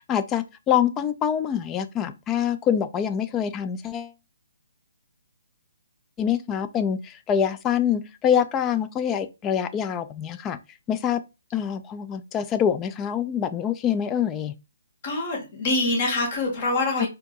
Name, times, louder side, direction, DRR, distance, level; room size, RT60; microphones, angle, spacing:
voice 1, 0.0-4.1 6.2-10.6 10.9-11.2 11.5-14.5 17.0-17.1, left 8 dB, 15° left, 0.3 m, -25 dB
voice 2, 15.0-17.1, left 2 dB, 40° left, 1.9 m, -25 dB
4.4 x 2.7 x 2.5 m
figure-of-eight pair, 140°, 0 cm